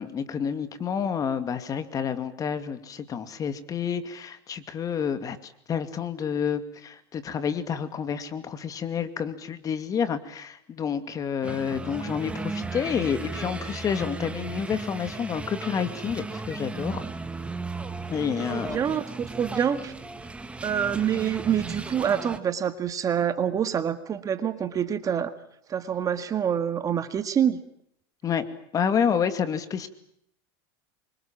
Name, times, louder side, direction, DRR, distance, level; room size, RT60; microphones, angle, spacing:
voice 1, 0.0-17.0 18.1-18.8 28.2-28.4 28.7-29.9, left 7 dB, 30° left, 10 dB, 2.4 m, -29 dB
sound 1, 11.4-22.4, right 3 dB, 10° right, 1.9 m, -36 dB
voice 2, 18.5-19.9 20.6-25.3 25.7-27.6, right 8 dB, 25° right, 11 dB, 1.8 m, -26 dB
27.0 x 24.5 x 7.4 m, 0.71 s
supercardioid pair, 135°, 13 cm